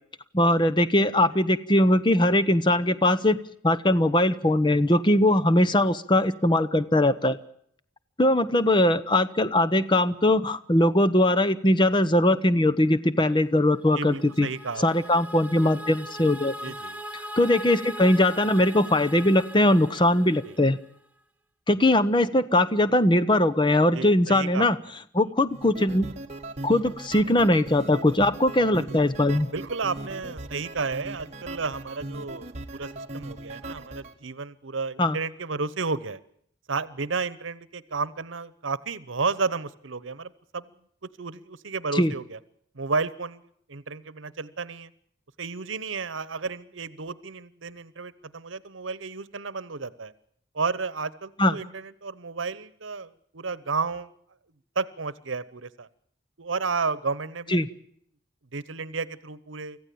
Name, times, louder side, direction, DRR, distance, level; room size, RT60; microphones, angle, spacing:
voice 1, 0.3-3.4 3.6-7.4 8.2-14.5 14.8-16.5 17.4-20.8 21.7-24.8 25.1-26.1 26.6-29.5 35.0-35.2 41.9-42.1 51.4-51.5 57.5-57.7, left 1 dB, 25° left, 14 dB, 0.9 m, -21 dB
sound 1, 13.8-21.0, equal, 10° right, 0.9 m, -40 dB
voice 2, 13.9-14.8 16.6-17.0 20.5-20.6 23.9-24.7 29.5-36.2 36.7-40.7 41.2-42.4 42.7-43.4 43.7-44.9 45.4-50.1 50.5-54.1 54.7-55.9 56.4-57.6 58.5-59.8, right 4 dB, 80° right, 18 dB, 1.0 m, -32 dB
sound 2, 25.5-34.1, right 2 dB, 35° right, 1.4 m, -39 dB
25.0 x 15.0 x 8.6 m, 0.69 s
head